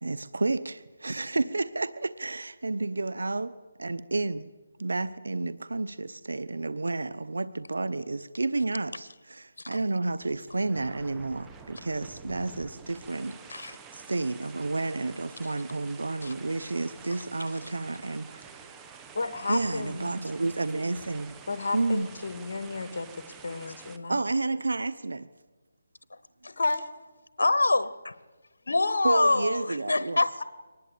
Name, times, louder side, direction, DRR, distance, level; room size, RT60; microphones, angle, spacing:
voice 1, 0.0-3.5 3.8-4.5 4.8-18.4 19.5-21.3 21.7-22.1 24.1-25.3 29.0-30.2, right 3 dB, 85° right, 1.0 m, -31 dB
sound 1, 10.1-24.0, right 5 dB, 10° right, 1.2 m, -48 dB
voice 2, 19.1-20.2 21.5-24.2 26.5-26.8, left 3 dB, 55° left, 2.7 m, -32 dB
voice 3, 27.4-28.1 28.7-30.4, left 2 dB, 85° left, 1.1 m, -25 dB
24.0 x 19.5 x 8.6 m
figure-of-eight pair, 165°, 0 cm